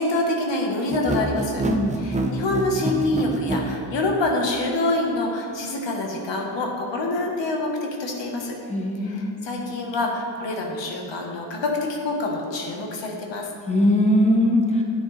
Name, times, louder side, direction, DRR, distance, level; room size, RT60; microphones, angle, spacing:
voice 1, 0.0-1.6 1.9-8.5 9.0-13.5, left 2 dB, 90° left, 0 dB, 1.3 m, -26 dB
sound 1, 0.9-3.7, right 2 dB, 15° right, 0.6 m, -26 dB
voice 2, 1.6-2.0 8.7-9.4 13.7-14.8, left 1 dB, 15° left, -1 dB, 1.2 m, -20 dB
10.0 x 8.7 x 3.2 m, 2.5 s
wide cardioid pair, 120°, 42 cm